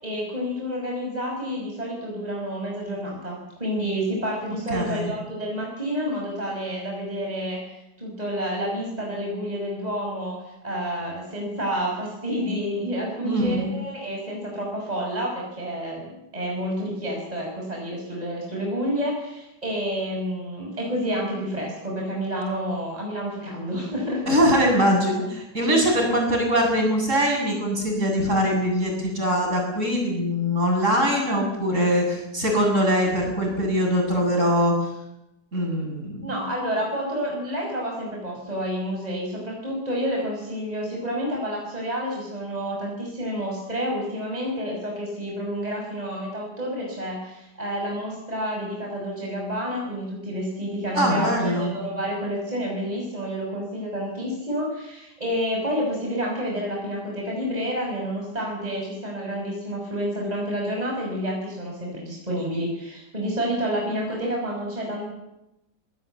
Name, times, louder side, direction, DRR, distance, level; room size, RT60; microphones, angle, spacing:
voice 1, 0.0-10.4 10.6-16.0 16.3-24.2 25.6-25.7 36.2-65.1, equal, 20° right, -1 dB, 6.0 m, -29 dB
voice 2, 4.7-5.1 13.2-13.7 24.3-34.9 35.5-36.4 50.9-51.7, equal, 45° right, 1 dB, 8.2 m, -22 dB
25.0 x 18.5 x 8.4 m, 0.89 s
omnidirectional pair, 1.9 m